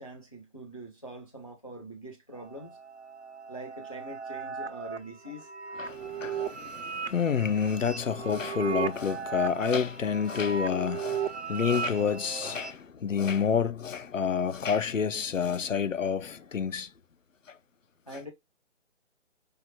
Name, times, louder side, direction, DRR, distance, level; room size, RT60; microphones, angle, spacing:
voice 1, 0.0-2.8 3.5-5.5 18.1-18.3, right 1 dB, 30° left, 0.4 m, -43 dB
sound 1, 2.4-12.7, right 6 dB, 60° right, 0.6 m, -36 dB
voice 2, 5.8-16.9 17.5-17.6, left 7 dB, 85° left, 0.6 m, -29 dB
4.7 x 2.5 x 2.9 m
figure-of-eight pair, 150°, 37 cm